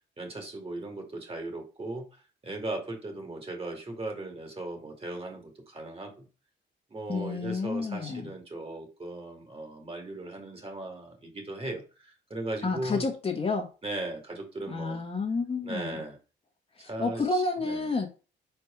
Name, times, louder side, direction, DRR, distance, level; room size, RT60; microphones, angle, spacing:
voice 1, 0.2-6.3 6.9-13.0 13.8-15.0 15.6-16.2 16.8-17.9, right 2 dB, 30° right, 2.3 m, -38 dB
voice 2, 7.1-8.3 12.6-13.7 14.7-16.0 16.8-18.1, left 3 dB, 30° left, 1.5 m, -30 dB
4.7 x 4.2 x 5.1 m
cardioid pair, 90°, 20 cm